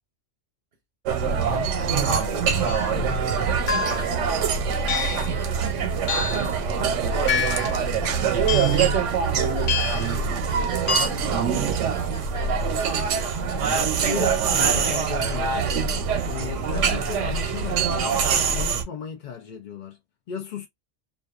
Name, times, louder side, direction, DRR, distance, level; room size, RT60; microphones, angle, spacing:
sound 1, 1.1-18.8, right 6 dB, 90° right, 0.9 m, -24 dB
voice 1, 1.3-3.2 13.7-15.7 16.2-18.2 18.5-20.0 20.3-20.7, left 8 dB, 60° left, 0.5 m, -36 dB
sound 2, 2.7-2.9 3.7-4.2 4.9-5.3 6.1-6.5 7.3-7.8 8.5-8.9 9.7-10.1 10.9-11.1, left 6 dB, 85° left, 1.2 m, -27 dB
voice 2, 3.9-6.8 7.1-13.1 14.1-14.5, right 4 dB, 60° right, 0.7 m, -40 dB
2.5 x 2.2 x 2.3 m
omnidirectional pair, 1.2 m